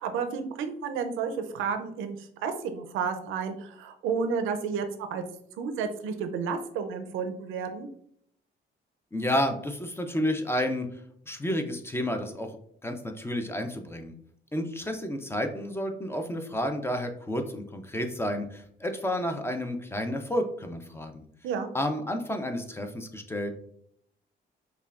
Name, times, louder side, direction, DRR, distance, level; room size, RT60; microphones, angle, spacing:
voice 1, 0.0-5.2 5.6-7.9 21.4-21.7, right 6 dB, 90° right, 8 dB, 0.5 m, -31 dB
voice 2, 9.1-10.9 11.3-12.6 12.8-14.1 14.5-21.2 21.7-23.5, left 1 dB, 10° left, 6 dB, 0.5 m, -30 dB
5.4 x 2.3 x 2.4 m, 0.68 s
cardioid pair, 90°, 20 cm